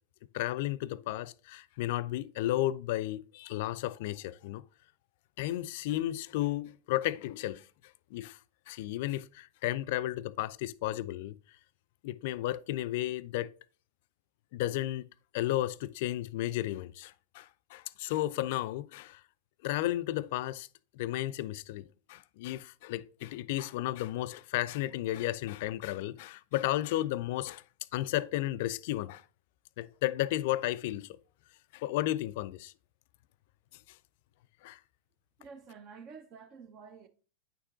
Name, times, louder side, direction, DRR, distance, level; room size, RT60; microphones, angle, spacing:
voice 1, 0.3-4.6 5.4-7.6 8.1-8.4 8.7-11.4 12.0-13.5 14.5-15.0 15.3-19.2 19.6-20.7 20.9-27.6 27.9-29.2 29.8-31.2 31.7-32.7 34.6-34.8, left 15 dB, 50° left, 0.3 m, -33 dB
voice 2, 35.4-37.1, right 5 dB, 35° right, 0.8 m, -49 dB
9.5 x 6.4 x 2.4 m
figure-of-eight pair, 90°, 0 cm